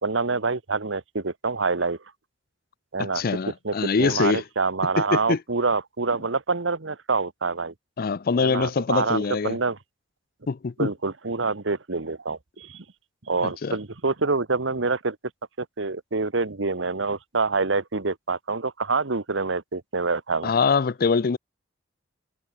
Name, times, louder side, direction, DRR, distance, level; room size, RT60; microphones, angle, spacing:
voice 1, 0.0-2.0 2.9-7.7 8.4-9.8 10.8-12.8 13.3-15.2 15.6-20.5, right 4 dB, 80° right, 1.3 m, -26 dB
voice 2, 3.0-4.4 5.1-5.4 8.0-9.6 10.5-10.9 13.4-13.8 20.4-21.4, left 5 dB, 50° left, 0.5 m, -24 dB
head